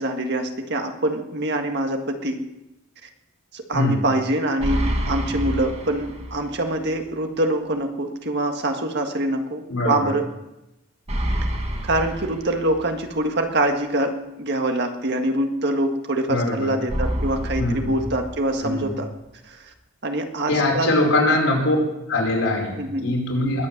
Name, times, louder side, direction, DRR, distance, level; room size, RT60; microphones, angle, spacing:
voice 1, 0.0-2.4 3.5-10.2 11.8-19.1 19.4-19.7 20.0-21.4 22.8-23.2, right 1 dB, 55° right, 4 dB, 1.8 m, -25 dB
voice 2, 3.7-4.1 9.7-10.1 16.3-16.7 17.6-17.9 18.6-18.9 20.5-21.8 22.1-22.8 23.0-23.7, left 2 dB, 85° left, -1 dB, 5.0 m, -22 dB
sound 1, 4.6-6.6 7.0-7.1 11.1-13.1 16.9-18.9, equal, 30° right, 1.7 m, -28 dB
20.5 x 8.6 x 7.3 m, 0.94 s
head